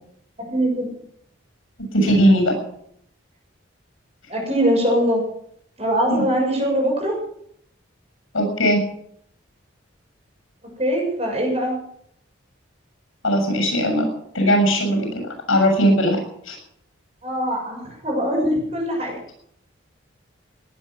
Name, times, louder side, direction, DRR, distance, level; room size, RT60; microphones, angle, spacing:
voice 1, 0.4-0.9 4.3-5.2 5.8-7.2 10.8-11.8 17.2-19.1, equal, 30° right, -1 dB, 6.8 m, -22 dB
voice 2, 1.9-2.5 6.1-6.2 8.3-8.8 13.2-14.1 14.3-16.2 16.4-16.6, equal, 85° left, 4 dB, 7.2 m, -18 dB
18.5 x 10.0 x 7.5 m, 0.70 s
head